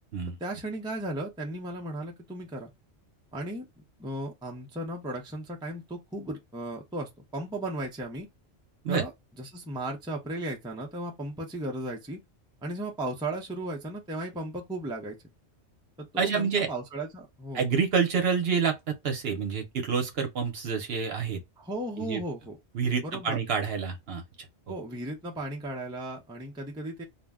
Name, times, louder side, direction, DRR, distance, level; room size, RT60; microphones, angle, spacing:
voice 1, 0.4-2.7 3.3-3.7 4.0-8.3 8.9-9.1 9.4-12.2 12.6-15.2 16.0-17.6 21.6-22.6 23.0-23.4 24.7-27.0, right 1 dB, 5° right, 0.4 m, -35 dB
voice 2, 16.2-16.7 17.5-21.4 22.0-22.2 22.7-24.2, right 6 dB, 65° right, 0.9 m, -28 dB
2.5 x 2.1 x 3.5 m
omnidirectional pair, 1.2 m